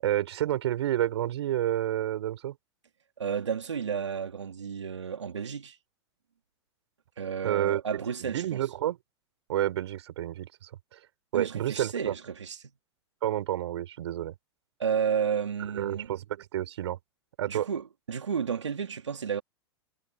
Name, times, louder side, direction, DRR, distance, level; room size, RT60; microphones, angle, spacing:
voice 1, 0.0-2.6 7.4-9.0 9.5-11.0 11.3-12.1 13.2-14.3 15.7-17.0 17.4-17.7, right 12 dB, 70° right, 5.4 m, -30 dB
voice 2, 3.2-5.8 7.2-8.6 11.3-12.7 14.8-16.1 17.5-19.4, right 7 dB, 85° right, 3.1 m, -32 dB
hypercardioid pair, 100°, 15 cm